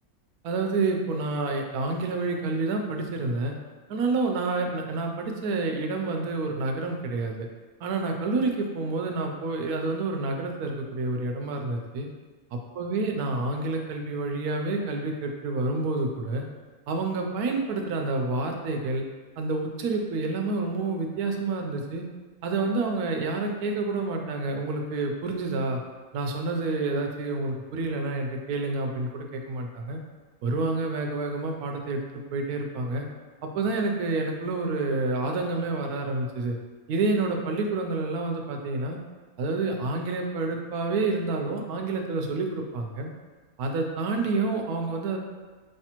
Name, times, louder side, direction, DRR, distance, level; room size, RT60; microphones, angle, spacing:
voice 1, 0.4-3.5 3.9-7.5 7.8-12.1 12.5-16.4 16.9-19.0 19.4-22.0 22.4-25.8 26.1-30.0 30.4-32.0 32.3-33.1 33.5-36.6 36.9-39.0 39.4-43.1 43.6-45.2, right 3 dB, 85° right, 3 dB, 1.1 m, -28 dB
4.8 x 3.3 x 2.9 m, 1.4 s
omnidirectional pair, 1.6 m